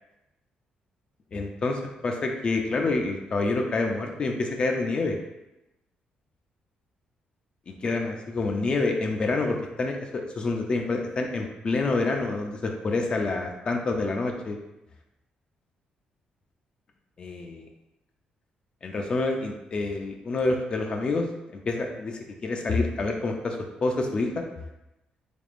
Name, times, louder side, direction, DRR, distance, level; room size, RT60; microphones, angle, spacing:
voice 1, 1.3-5.2 7.7-10.0 10.4-14.6 17.2-17.6 18.8-21.3 21.6-24.4, left 3 dB, 35° left, 2 dB, 0.4 m, -27 dB
3.5 x 3.4 x 2.4 m, 0.94 s
cardioid pair, 125°, 3 cm